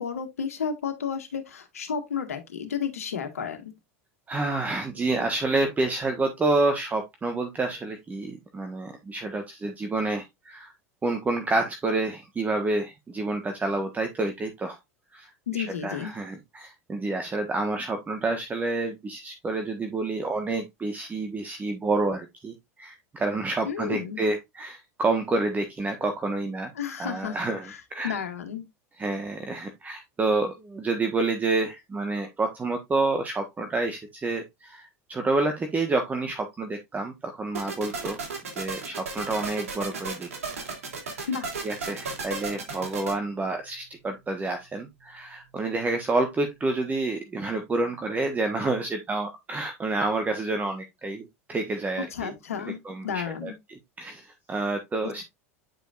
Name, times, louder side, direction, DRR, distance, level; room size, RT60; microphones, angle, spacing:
voice 1, 0.0-3.7 15.5-16.1 23.6-24.2 26.8-27.4 27.7-27.8 28.0-28.6 41.3-41.5 52.1-52.8 53.0-53.5 55.0-55.2, left 7 dB, 90° left, 1.5 m, -32 dB
voice 2, 4.3-10.7 11.0-14.8 15.1-26.7 27.0-28.2 28.9-38.2 38.5-40.6 41.0-41.3 41.6-52.4 52.6-55.2, right 2 dB, 20° right, 1.3 m, -29 dB
sound 1, 37.5-43.1, right 4 dB, 85° right, 3.0 m, -34 dB
9.1 x 5.3 x 2.5 m
hypercardioid pair, 90°, 8 cm